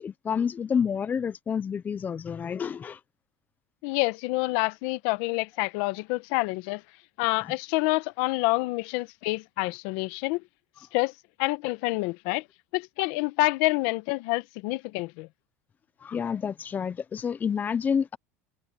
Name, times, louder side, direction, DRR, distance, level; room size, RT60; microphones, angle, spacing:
voice 1, 0.0-3.0 16.0-18.2, left 7 dB, 25° left, 0.7 m, -29 dB
voice 2, 3.8-6.8 7.2-10.4 10.9-11.1 11.4-12.4 12.7-15.3, left 23 dB, 70° left, 1.2 m, -27 dB
supercardioid pair, 110°, 7 cm